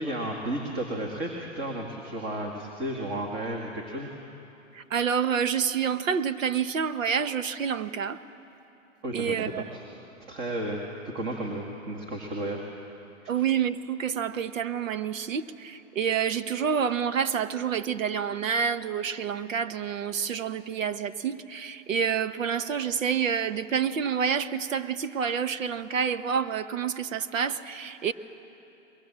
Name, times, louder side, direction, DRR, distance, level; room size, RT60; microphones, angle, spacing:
voice 1, 0.0-4.1 9.0-9.8 10.2-12.7 13.2-13.3, right 1 dB, 25° right, 1 dB, 2.0 m, -33 dB
voice 2, 4.7-8.2 9.1-9.6 13.3-28.1, right 7 dB, 80° right, 12 dB, 1.1 m, -28 dB
24.0 x 22.0 x 7.5 m, 2.9 s
hypercardioid pair, 140°, 39 cm